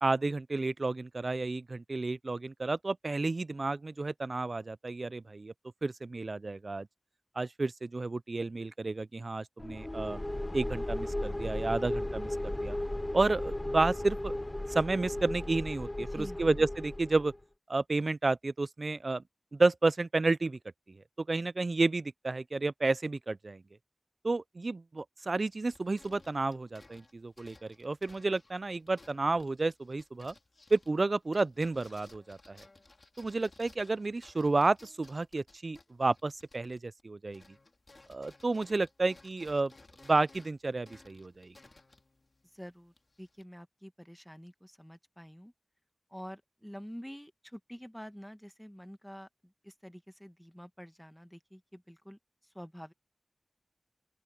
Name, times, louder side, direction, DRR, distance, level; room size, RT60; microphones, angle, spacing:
voice 1, 0.0-5.5 5.8-6.9 7.4-10.2 10.5-12.8 13.1-14.4 14.7-17.3 17.7-19.2 19.5-20.6 20.9-23.6 24.2-30.3 30.7-32.6 33.2-37.4 38.1-39.7 40.0-41.5, right 3 dB, 75° right, 0.4 m, -31 dB
sound 1, 9.6-17.4, left 1 dB, 30° left, 0.5 m, -36 dB
voice 2, 16.0-16.5 42.5-45.5 46.1-52.9, equal, 5° left, 1.7 m, -48 dB
sound 2, 25.4-37.0 37.3-43.4, left 2 dB, 65° left, 2.8 m, -59 dB
open air
wide cardioid pair, 55°, 0 cm